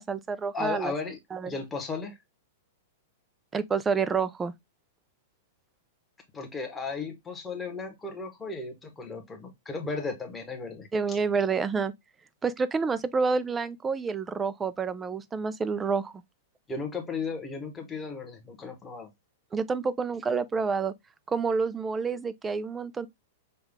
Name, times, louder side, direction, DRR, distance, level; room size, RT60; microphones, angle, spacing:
voice 1, 0.0-0.9 1.3-1.5 3.5-4.5 10.9-11.9 12.4-16.1 19.5-20.9 21.3-23.1, right 5 dB, 10° right, 0.3 m, -28 dB
voice 2, 0.5-1.2 1.5-2.2 6.3-11.2 16.7-19.1, left 4 dB, 10° left, 1.0 m, -35 dB
5.4 x 2.3 x 3.4 m
supercardioid pair, 170°, 0 cm